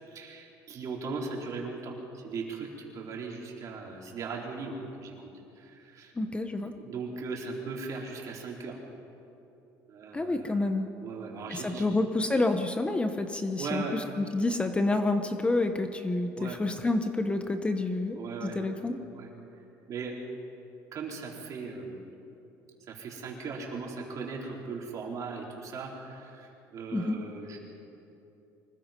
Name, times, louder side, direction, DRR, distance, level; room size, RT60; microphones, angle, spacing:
voice 1, 0.1-5.3 5.6-6.1 6.7-8.8 9.9-10.7 11.0-11.9 13.6-13.9 16.4-16.6 18.1-18.6 19.1-19.3 19.9-20.1 20.9-22.0 22.9-27.6, right 4 dB, 50° right, -2 dB, 4.5 m, -38 dB
voice 2, 6.1-6.7 10.1-10.9 11.5-19.0 26.9-27.2, left 2 dB, 15° left, 7 dB, 1.0 m, -29 dB
25.0 x 20.0 x 5.4 m, 2.8 s
cardioid pair, 115°, 7 cm